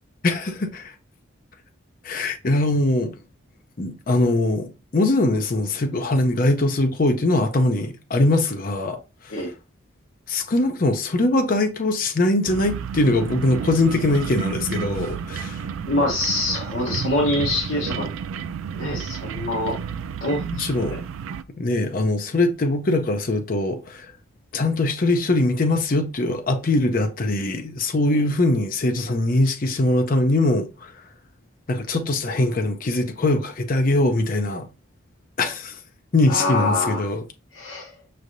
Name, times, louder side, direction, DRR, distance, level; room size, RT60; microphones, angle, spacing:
voice 1, 0.2-0.9 2.0-3.2 3.8-9.0 9.2-9.4 10.3-15.6 20.5-21.0 21.6-24.1 24.5-30.9 31.7-34.7 35.4-35.8 36.1-37.2, left 2 dB, 40° left, 0.5 m, -22 dB
sound 1, 12.5-21.4, right 6 dB, 80° right, 0.3 m, -31 dB
voice 2, 15.9-18.1 18.7-19.8 20.2-21.0 36.3-37.0 37.5-37.9, left 2 dB, 70° left, 1.0 m, -25 dB
5.4 x 3.2 x 2.5 m
head